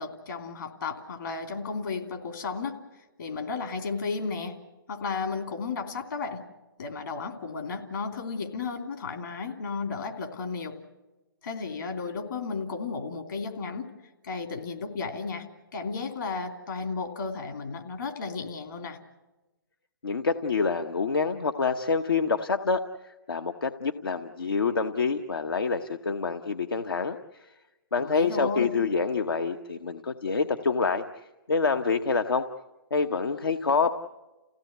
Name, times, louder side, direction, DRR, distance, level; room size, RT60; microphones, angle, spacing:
voice 1, 0.0-2.7 3.2-4.6 4.9-6.4 6.8-10.8 11.4-13.9 14.2-15.5 15.7-19.0 28.0-28.7, left 4 dB, 65° left, 5 dB, 3.1 m, -33 dB
voice 2, 20.0-27.5 27.9-32.4 32.9-33.9, left 4 dB, 85° left, 6 dB, 1.0 m, -27 dB
29.5 x 16.5 x 8.0 m, 1.1 s
hypercardioid pair, 135°, 12 cm